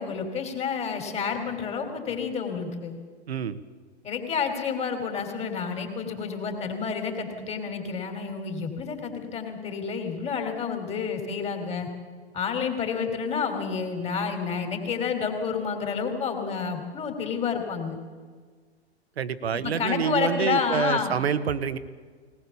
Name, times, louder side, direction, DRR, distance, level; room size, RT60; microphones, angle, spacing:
voice 1, 0.0-3.0 4.0-11.9 12.3-18.0 19.5-21.1, left 6 dB, 20° left, 5 dB, 3.2 m, -29 dB
voice 2, 3.3-3.6 19.2-21.8, right 7 dB, 70° right, 13 dB, 1.3 m, -27 dB
20.0 x 19.0 x 7.1 m, 1.5 s
figure-of-eight pair, 110°, 33 cm